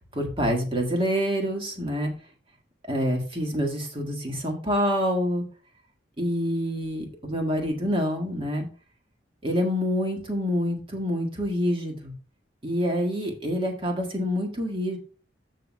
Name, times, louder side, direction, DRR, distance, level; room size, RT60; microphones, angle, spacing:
voice 1, 0.1-2.1 2.9-5.4 6.2-8.7 9.4-12.1 12.6-15.0, equal, 30° right, 2 dB, 1.7 m, -27 dB
15.0 x 5.8 x 2.3 m, 0.36 s
head